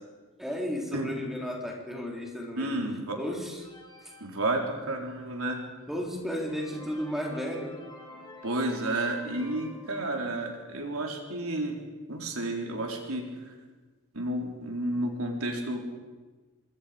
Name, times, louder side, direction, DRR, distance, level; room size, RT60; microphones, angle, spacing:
voice 1, 0.4-2.8 3.2-3.7 5.9-7.8, equal, ahead, -1 dB, 3.8 m, -34 dB
voice 2, 2.5-3.2 4.2-5.6 8.4-11.8 12.1-13.5 14.1-15.8, right 1 dB, 75° right, 1 dB, 4.2 m, -31 dB
sound 1, 3.5-5.2 5.7-5.8 6.2-10.7, left 1 dB, 20° left, 3.6 m, -49 dB
26.0 x 22.0 x 5.3 m, 1.3 s
head